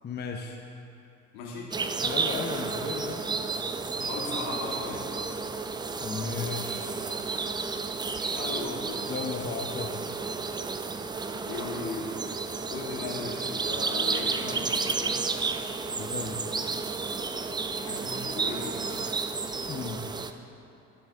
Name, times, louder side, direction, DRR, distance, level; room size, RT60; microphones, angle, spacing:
voice 1, 0.0-0.6 2.0-3.3 6.0-6.9 9.1-10.0 16.0-16.4 19.7-20.0, left 5 dB, 25° left, 2 dB, 0.9 m, -35 dB
voice 2, 1.3-1.8 3.9-5.1 8.0-9.2 11.5-12.2 12.7-15.2 17.6-19.1, left 3 dB, 60° left, -4 dB, 2.7 m, -37 dB
sound 1, 1.7-20.3, right 4 dB, 10° right, 0.4 m, -32 dB
19.5 x 7.0 x 3.6 m, 2.9 s
figure-of-eight pair, 60°, 40 cm